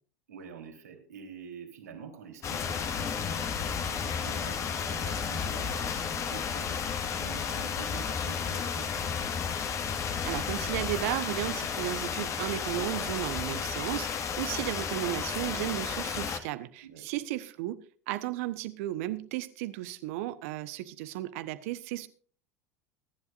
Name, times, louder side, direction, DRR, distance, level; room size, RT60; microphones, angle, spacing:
voice 1, 0.3-9.1 16.8-17.2, right 7 dB, 80° right, 3.8 m, -47 dB
sound 1, 2.4-16.4, left 6 dB, 35° left, 1.8 m, -32 dB
voice 2, 10.2-22.1, right 15 dB, 60° right, 1.1 m, -34 dB
22.0 x 11.0 x 2.6 m
hypercardioid pair, 80°, 8 cm